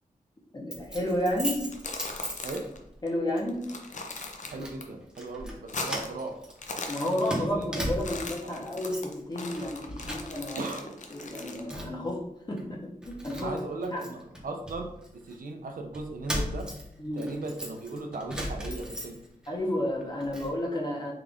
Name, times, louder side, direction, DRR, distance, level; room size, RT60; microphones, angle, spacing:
voice 1, 0.5-1.6 3.0-3.6 6.9-10.6 11.1-12.2 12.5-13.5 13.9-14.0 17.0-17.3 19.5-21.1, left 1 dB, 30° left, -1 dB, 0.8 m, -31 dB
Keys jangling, 0.7-3.0 3.4-3.6 4.2-4.8 5.1-5.6 5.8-8.3 8.7-9.2 9.5-10.7 11.0-12.1 12.6-12.7 13.0-15.4 15.9-19.5 19.9-20.5, equal, 5° right, 0.8 m, -37 dB
sound 1, 1.6-2.8 3.1-3.2 3.5-4.8 5.2-6.2 6.5-7.6 7.9-11.7, left 3 dB, 55° left, 0.5 m, -39 dB
voice 2, 4.5-6.4 7.3-7.7 8.4-8.6 10.6-10.8 13.4-16.7 17.1-19.2, right 2 dB, 70° right, 4 dB, 0.5 m, -37 dB
3.7 x 2.4 x 3.4 m, 0.79 s
wide cardioid pair, 110°, 15 cm